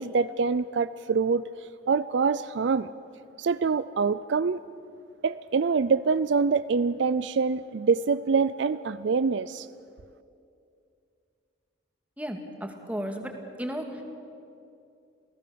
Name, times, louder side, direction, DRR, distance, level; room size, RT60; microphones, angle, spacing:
voice 1, 0.0-1.4 1.9-2.9 3.4-4.6 5.2-9.7, right 5 dB, 65° right, 15 dB, 0.4 m, -25 dB
voice 2, 12.2-13.3 13.6-14.0, equal, 10° right, 3 dB, 2.1 m, -34 dB
28.5 x 17.0 x 7.0 m, 2.5 s
head